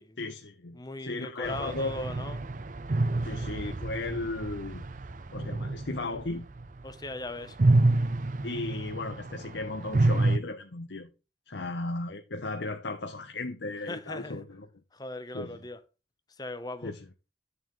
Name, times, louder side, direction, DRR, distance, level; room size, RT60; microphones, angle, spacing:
voice 1, 0.2-2.1 3.2-4.8 5.3-6.5 8.4-11.1 11.5-14.7 15.3-15.6 16.8-17.0, left 2 dB, 80° left, 1.0 m, -36 dB
voice 2, 0.7-2.4 6.8-7.6 13.9-14.4 14.9-15.8 16.4-16.9, left 2 dB, 20° left, 0.9 m, -38 dB
sound 1, 1.4-7.1 7.4-10.4, right 2 dB, 45° right, 0.6 m, -28 dB
10.5 x 7.0 x 3.2 m
head